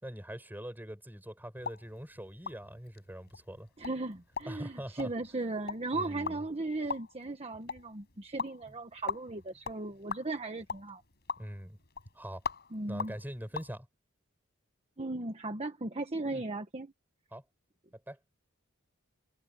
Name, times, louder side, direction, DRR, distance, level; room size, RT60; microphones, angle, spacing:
voice 1, 0.0-3.7 4.5-5.1 5.9-6.4 9.9-10.0 11.4-11.8 12.1-12.4 12.9-13.9 16.3-16.4 17.3-17.4 18.1-18.2, equal, 10° right, 7.1 m, -43 dB
sound 1, 1.6-13.7, left 5 dB, 50° left, 5.9 m, -43 dB
voice 2, 3.8-11.0 12.7-13.1 15.0-16.9, right 2 dB, 30° right, 1.3 m, -37 dB
head